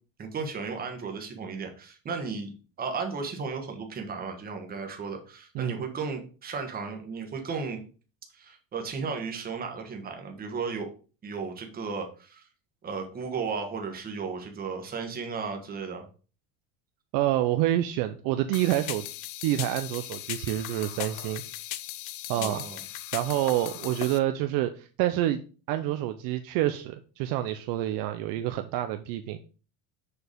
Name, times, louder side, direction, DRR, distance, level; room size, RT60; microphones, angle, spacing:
voice 1, 0.2-7.8 8.3-10.9 11.2-12.4 12.8-16.0 22.4-22.8, right 5 dB, 20° right, 4 dB, 1.3 m, -35 dB
voice 2, 17.1-19.0 19.4-21.4 22.3-22.7 23.1-25.4 25.7-29.4, right 14 dB, 55° right, 8 dB, 0.6 m, -27 dB
sound 1, 18.5-24.2, left 14 dB, 50° left, 0.6 m, -38 dB
6.7 x 4.7 x 5.1 m, 0.37 s
cardioid pair, 165°, 41 cm